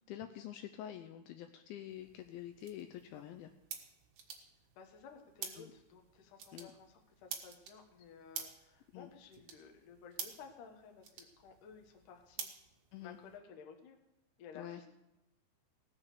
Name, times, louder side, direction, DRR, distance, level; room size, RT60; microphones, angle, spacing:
voice 1, 0.1-3.5 5.6-5.7 6.5-6.7 8.9-9.1 12.9-13.2 14.6-14.8, left 11 dB, 80° left, 6 dB, 2.8 m, -47 dB
sound 1, 1.9-13.4, right 7 dB, 75° right, 1.7 m, -50 dB
voice 2, 4.8-12.5 13.0-14.0 14.4-14.9, left 6 dB, 65° left, 3 dB, 2.2 m, -55 dB
18.0 x 7.3 x 6.6 m, 0.91 s
omnidirectional pair, 5.6 m